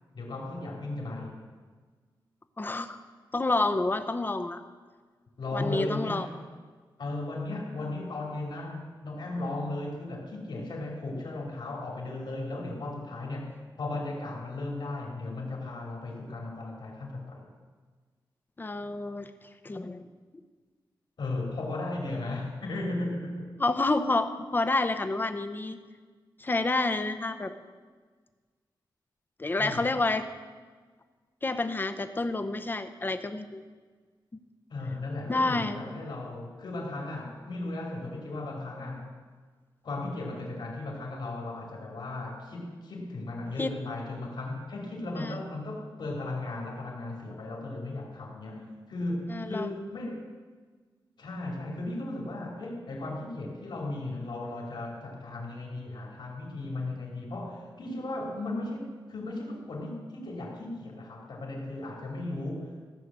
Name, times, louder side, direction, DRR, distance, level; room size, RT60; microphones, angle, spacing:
voice 1, 0.1-1.4 5.4-6.3 7.0-17.5 21.2-23.5 29.6-29.9 34.7-39.1 39.8-50.3 51.2-62.7, left 2 dB, 65° left, 0 dB, 2.8 m, -36 dB
voice 2, 2.6-3.0 3.3-4.6 5.5-6.3 18.6-19.3 19.6-20.0 23.6-25.8 26.4-27.5 29.4-30.2 31.4-33.6 35.3-35.8 43.6-43.7 45.2-45.3 49.3-49.7, left 2 dB, 25° left, 9 dB, 0.7 m, -28 dB
15.0 x 6.6 x 7.5 m, 1.5 s
wide cardioid pair, 135°, 8 cm